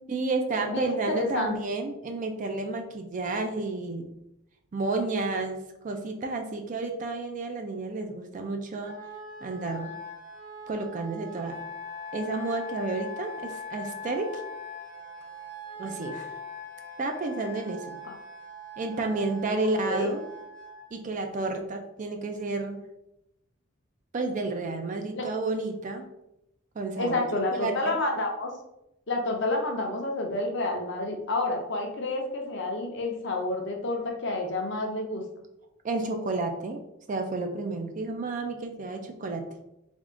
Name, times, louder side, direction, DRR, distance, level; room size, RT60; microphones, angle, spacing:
voice 1, 0.1-4.1 4.7-9.0 9.4-9.9 10.7-11.6 12.1-14.4 15.8-16.3 17.0-18.0 18.8-20.2 20.9-22.8 24.1-26.1 26.8-27.2 27.5-28.0 35.8-36.8 37.1-39.5, right 3 dB, 35° right, 4 dB, 0.4 m, -31 dB
voice 2, 0.7-1.5 18.0-18.1 19.8-20.1 25.2-25.3 27.0-28.5 29.1-35.2, left 2 dB, 55° left, 2 dB, 0.6 m, -29 dB
Wind instrument woodwind instrument, 8.8-20.9, left 2 dB, 55° right, 0.9 m, -41 dB
3.5 x 2.4 x 3.7 m, 0.85 s
head